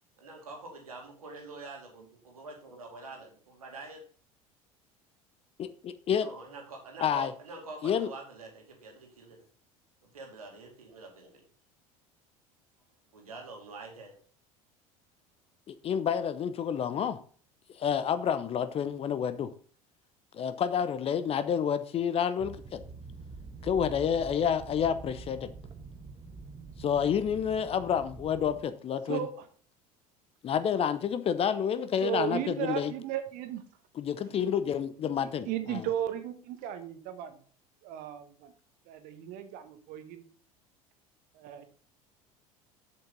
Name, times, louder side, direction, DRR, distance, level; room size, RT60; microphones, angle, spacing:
voice 1, 0.2-4.0 6.2-9.4 10.0-11.4 13.1-14.2, right 3 dB, 75° right, 2 dB, 2.3 m, -46 dB
voice 2, 5.6-6.3 7.0-7.3 7.8-8.1 15.7-17.2 17.8-19.5 20.3-22.8 23.6-25.5 26.8-29.2 30.4-32.9 34.0-35.5, left 8 dB, 30° left, 12 dB, 0.7 m, -29 dB
sound 1, 22.4-28.6, right 4 dB, 25° right, 1.0 m, -46 dB
voice 3, 29.0-29.5 32.0-33.6 34.3-34.4 35.2-37.4 37.8-38.5 38.8-40.2 41.3-41.7, right 11 dB, 50° right, 9 dB, 1.3 m, -35 dB
7.6 x 7.3 x 3.9 m, 0.43 s
figure-of-eight pair, 70°, 19 cm